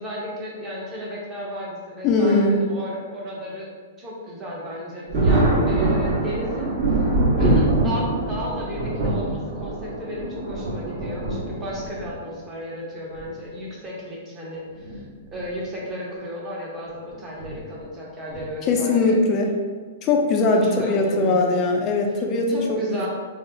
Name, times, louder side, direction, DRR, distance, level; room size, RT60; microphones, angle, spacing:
voice 1, 0.0-3.7 4.0-6.7 7.4-15.0 15.3-19.2 20.5-21.6 22.5-23.1, equal, 20° right, -4 dB, 0.8 m, -33 dB
voice 2, 2.0-2.6 18.7-19.5 20.0-23.1, left 3 dB, 30° left, 1 dB, 0.5 m, -20 dB
Thunder, 5.1-12.1 13.2-13.3 14.7-15.0 15.3-15.4 17.4-17.6 18.3-18.7, right 2 dB, 50° right, 1.4 m, -23 dB
4.1 x 2.1 x 2.7 m, 1.6 s
hypercardioid pair, 140°, 0 cm